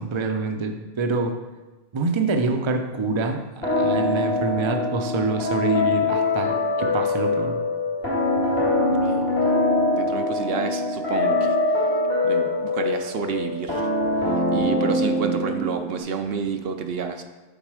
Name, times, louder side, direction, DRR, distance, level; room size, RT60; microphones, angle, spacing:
voice 1, 0.0-1.4 1.9-3.4 3.8-7.6, right 3 dB, 35° right, 5 dB, 0.5 m, -25 dB
sound 1, 3.6-16.0, left 2 dB, 70° left, 2.7 m, -23 dB
voice 2, 9.9-11.6 12.2-13.9 14.2-17.2, right 6 dB, 70° right, 5 dB, 0.8 m, -29 dB
7.4 x 4.0 x 4.8 m, 1.2 s
omnidirectional pair, 1.1 m